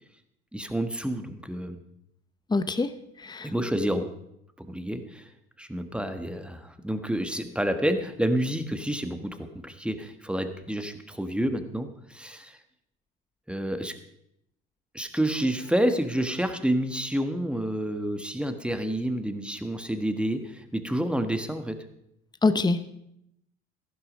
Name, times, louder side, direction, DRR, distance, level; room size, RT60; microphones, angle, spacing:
voice 1, 0.5-1.8 3.4-4.1 4.6-5.3 5.6-12.6 13.5-14.0 14.9-21.8, right 1 dB, 5° right, 8 dB, 1.5 m, -29 dB
voice 2, 2.5-2.9 3.2-3.5 22.4-22.9, left 3 dB, 15° left, 12 dB, 0.9 m, -24 dB
14.0 x 11.5 x 5.4 m, 0.78 s
hypercardioid pair, 65°, 30 cm